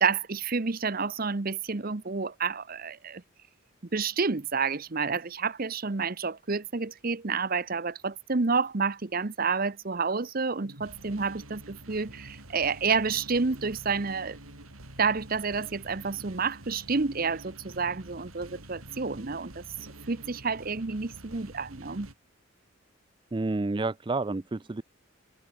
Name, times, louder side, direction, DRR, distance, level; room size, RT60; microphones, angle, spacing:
voice 1, 0.0-3.2 3.9-14.4 15.0-19.6 20.1-22.1, right 4 dB, 45° right, 0.8 m, -29 dB
sound 1, 10.6-22.1, right 1 dB, 85° right, 6.5 m, -47 dB
voice 2, 23.3-24.8, right 3 dB, 20° right, 0.4 m, -29 dB
head